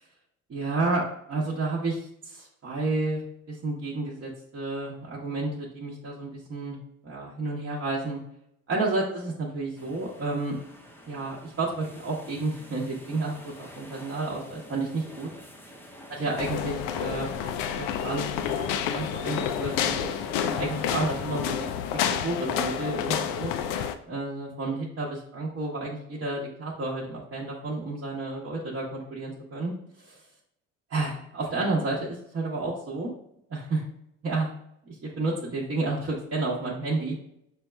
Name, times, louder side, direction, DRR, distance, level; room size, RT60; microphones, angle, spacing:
voice 1, 0.5-6.8 7.0-8.2 8.7-10.6 11.1-15.3 16.1-18.3 18.7-21.7 22.1-23.5 24.1-29.7 30.0-30.2 30.9-33.1 33.5-33.8 34.2-34.5 34.9-37.1, right 2 dB, 35° right, -5 dB, 1.0 m, -31 dB
sound 1, 9.8-21.8, equal, 5° left, 0.7 m, -47 dB
sound 2, 16.4-24.0, left 8 dB, 60° left, 0.5 m, -29 dB
6.1 x 2.2 x 2.2 m, 0.76 s
hypercardioid pair, 60°, 38 cm